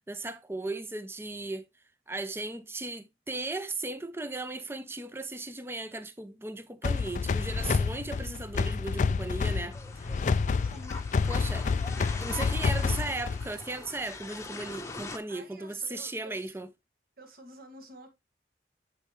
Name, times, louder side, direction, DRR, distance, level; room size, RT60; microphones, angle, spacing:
voice 1, 0.0-1.6 2.1-10.3 11.3-11.7 12.2-16.7, right 2 dB, 15° right, 0.6 m, -37 dB
sound 1, 6.8-13.6, left 4 dB, 45° left, 0.3 m, -29 dB
sound 2, 9.7-15.2, left 3 dB, 15° left, 0.9 m, -42 dB
voice 2, 10.6-11.0 11.5-11.8 15.3-16.6 17.2-18.1, right 1 dB, 55° right, 1.9 m, -50 dB
11.0 x 4.6 x 3.1 m
head